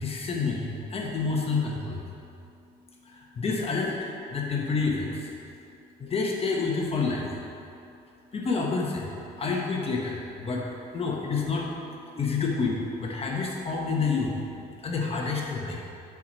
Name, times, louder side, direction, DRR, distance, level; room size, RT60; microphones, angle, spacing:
voice 1, 0.0-2.0 3.1-5.3 6.0-7.4 8.3-9.1 9.4-10.6 10.9-11.7 12.1-15.8, left 4 dB, 35° left, -1 dB, 1.0 m, -29 dB
6.9 x 4.7 x 6.1 m, 2.7 s
cardioid pair, 110°, 17 cm